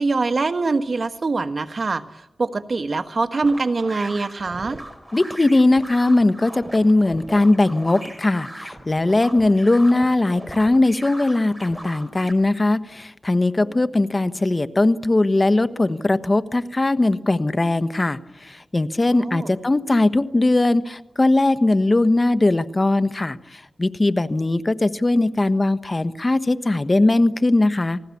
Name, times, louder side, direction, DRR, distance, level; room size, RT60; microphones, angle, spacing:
voice 1, 0.0-4.8 13.6-13.7 19.2-19.5, right 3 dB, 55° right, 8 dB, 1.5 m, -24 dB
sound 1, 3.4-12.3, right 1 dB, 15° right, 5.0 m, -39 dB
voice 2, 5.1-28.0, left 2 dB, 35° left, 11 dB, 1.3 m, -19 dB
29.0 x 20.0 x 8.6 m, 0.89 s
cardioid pair, 60°, 0 cm